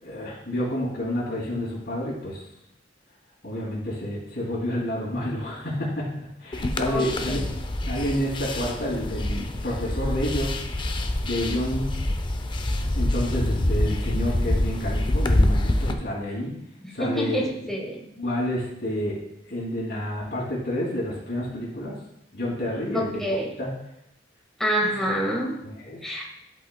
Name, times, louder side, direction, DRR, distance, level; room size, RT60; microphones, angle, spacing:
voice 1, 0.0-2.4 3.4-10.5 10.9-11.9 12.9-16.5 16.9-17.4 18.2-19.2 19.5-22.0 22.3-23.2 23.6-23.7 25.6-26.0, left 1 dB, 65° left, -7 dB, 2.5 m, -29 dB
sound 1, 6.5-15.9, left 1 dB, 25° left, 0.5 m, -26 dB
voice 2, 6.9-7.3 17.0-18.0 22.9-23.5 24.6-25.6 26.0-26.3, equal, 5° left, -2 dB, 1.3 m, -27 dB
11.5 x 5.5 x 2.2 m, 0.80 s
head